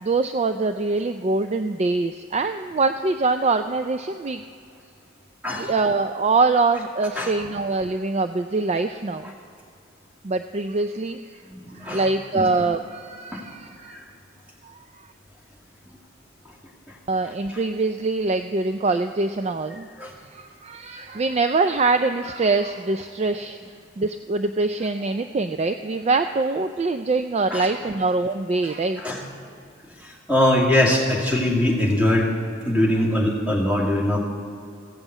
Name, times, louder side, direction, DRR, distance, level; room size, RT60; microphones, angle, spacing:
voice 1, 0.0-4.4 5.5-9.3 10.2-11.4 11.7-14.0 17.1-19.9 20.3-23.6 24.0-29.0, right 3 dB, 30° right, 8 dB, 0.3 m, -24 dB
voice 2, 11.5-12.1 12.3-12.5 13.3-13.5 13.9-14.0 20.0-20.1 27.5-27.7 29.0-29.2 30.0-32.3 32.6-34.2, left 1 dB, 5° right, -3 dB, 2.2 m, -22 dB
15.5 x 7.3 x 8.0 m, 2.5 s
head